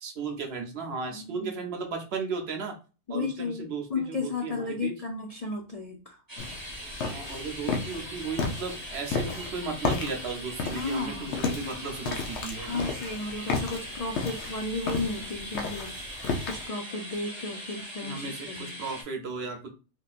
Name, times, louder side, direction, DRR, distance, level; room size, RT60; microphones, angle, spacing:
voice 1, 0.0-2.7 3.1-4.9 7.1-12.9 18.0-19.7, right 4 dB, 65° right, 3 dB, 0.9 m, -35 dB
voice 2, 1.1-1.6 3.1-6.2 10.7-11.4 12.6-18.7, left 3 dB, 50° left, 1 dB, 0.4 m, -34 dB
sound 1, 6.3-19.0, equal, 20° right, 0.9 m, -41 dB
sound 2, 6.4-16.7, left 4 dB, 75° left, 0.9 m, -34 dB
3.4 x 2.6 x 2.4 m, 0.33 s
omnidirectional pair, 1.2 m